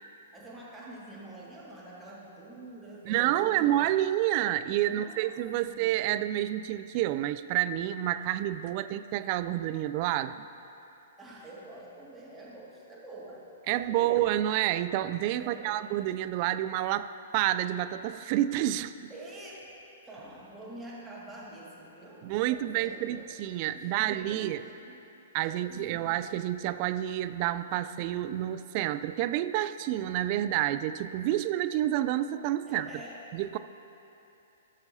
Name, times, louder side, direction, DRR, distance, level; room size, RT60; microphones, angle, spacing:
voice 1, 0.3-3.7 4.9-5.4 5.6-5.9 11.2-13.5 13.8-14.3 15.4-15.9 19.1-19.8 20.0-23.3 23.7-25.0 25.3-26.1 32.7-33.3, right 1 dB, 10° right, -6 dB, 2.1 m, -47 dB
voice 2, 3.1-10.5 13.7-19.1 22.2-24.6 25.3-32.9 33.3-33.6, right 13 dB, 40° right, 12 dB, 0.3 m, -29 dB
17.0 x 6.5 x 2.8 m, 2.9 s
figure-of-eight pair, 115°, 0 cm